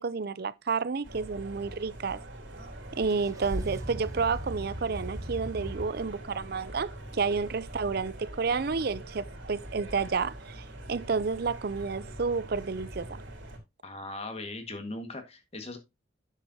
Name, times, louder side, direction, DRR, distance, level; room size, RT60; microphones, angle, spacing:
voice 1, 0.0-2.2 2.9-13.2, right 5 dB, 55° right, 0.5 m, -30 dB
sound 1, 1.0-13.6, right 1 dB, 85° right, 3.3 m, -42 dB
sound 2, 3.1-5.8, right 1 dB, 20° right, 1.0 m, -39 dB
voice 2, 13.8-15.8, left 2 dB, 35° left, 1.7 m, -39 dB
9.7 x 7.3 x 2.8 m
head